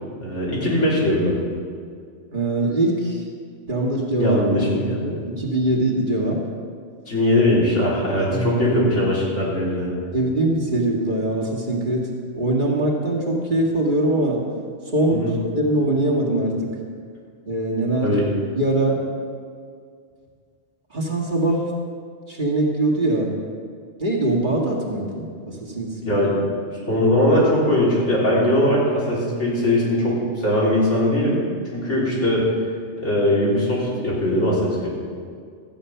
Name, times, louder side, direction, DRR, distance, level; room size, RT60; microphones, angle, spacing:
voice 1, 0.2-1.3 4.2-5.1 7.1-9.9 15.1-15.3 18.0-18.2 26.0-26.3 26.9-31.4 31.7-32.5 33.0-34.9, left 1 dB, 75° left, -7 dB, 3.9 m, -20 dB
voice 2, 2.3-3.2 3.7-6.4 8.3-8.6 10.1-12.1 12.4-14.4 14.9-16.7 17.5-18.1 18.6-19.0 20.9-21.6 22.3-23.3 24.0-25.9 26.8-26.9, right 1 dB, 45° right, -2 dB, 2.0 m, -22 dB
13.5 x 8.6 x 5.7 m, 2.1 s
omnidirectional pair, 1.2 m